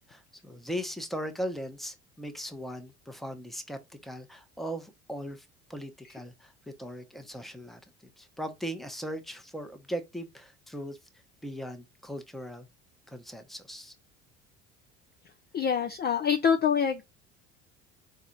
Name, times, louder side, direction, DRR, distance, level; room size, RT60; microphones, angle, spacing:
voice 1, 0.1-7.8 8.2-11.0 11.4-12.7 13.1-13.9, equal, ahead, 0.9 m, -38 dB
voice 2, 15.5-17.0, left 7 dB, 30° left, 0.5 m, -25 dB
4.2 x 2.4 x 4.4 m
hypercardioid pair, 65°, 35 cm